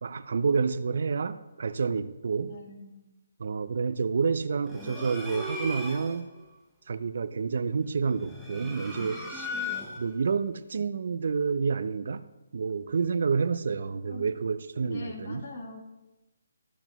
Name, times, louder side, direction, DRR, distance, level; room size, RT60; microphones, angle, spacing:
voice 1, 0.0-2.5 3.4-6.3 6.9-9.5 10.0-12.2 12.5-15.5, right 5 dB, 50° right, 13 dB, 0.5 m, -29 dB
voice 2, 2.5-3.0 14.1-14.4 14.8-15.8, left 2 dB, 35° left, 0 dB, 1.5 m, -41 dB
sound 1, 4.7-6.2 8.1-10.2, left 2 dB, ahead, 0.7 m, -36 dB
14.0 x 5.9 x 3.0 m, 1.0 s
hypercardioid pair, 175°, 0 cm